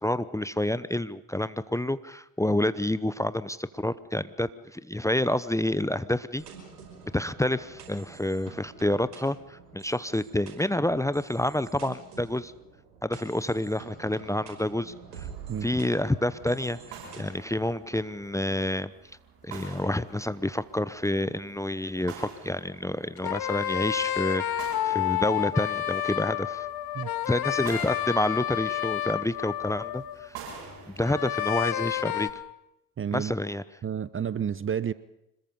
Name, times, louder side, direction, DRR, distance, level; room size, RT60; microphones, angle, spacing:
voice 1, 0.0-6.4 7.1-12.5 13.0-15.3 15.6-18.9 19.4-26.7 27.3-30.4 30.9-32.3 33.1-33.6, left 1 dB, 5° left, 15 dB, 0.8 m, -28 dB
sound 1, 6.4-17.2, right 6 dB, 85° right, 5.3 m, -48 dB
sound 2, 15.3-32.4, right 5 dB, 70° right, 7.6 m, -48 dB
sound 3, 23.2-30.3 31.0-32.3, left 12 dB, 50° left, 1.6 m, -30 dB
voice 2, 33.0-33.3 33.8-34.9, right 8 dB, 25° right, 17 dB, 0.8 m, -30 dB
26.0 x 21.0 x 5.4 m, 0.88 s
hypercardioid pair, 55°, 46 cm